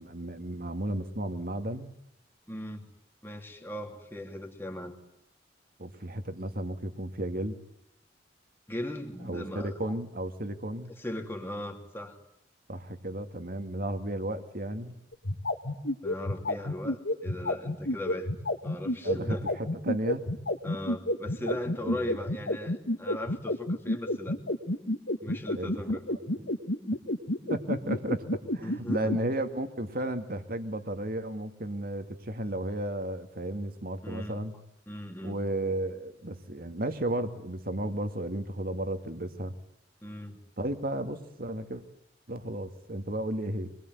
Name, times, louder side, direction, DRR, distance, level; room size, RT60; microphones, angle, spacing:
voice 1, 0.0-1.9 5.8-7.6 9.2-10.9 12.7-15.0 19.0-20.3 21.4-21.5 21.8-22.1 25.5-25.7 27.5-34.5 35.2-39.5 40.6-41.8 42.3-43.7, right 1 dB, 55° right, 8 dB, 2.3 m, -33 dB
voice 2, 2.5-2.9 3.2-5.0 8.7-9.9 11.0-12.2 16.0-18.3 18.6-19.4 20.6-24.4 25.2-26.2 28.6-29.1 34.0-34.4 34.9-35.4 40.0-40.4, left 1 dB, 15° left, 3 dB, 3.0 m, -38 dB
sound 1, 15.1-29.2, left 1 dB, 90° left, 2.4 m, -29 dB
26.0 x 22.0 x 9.5 m, 0.82 s
head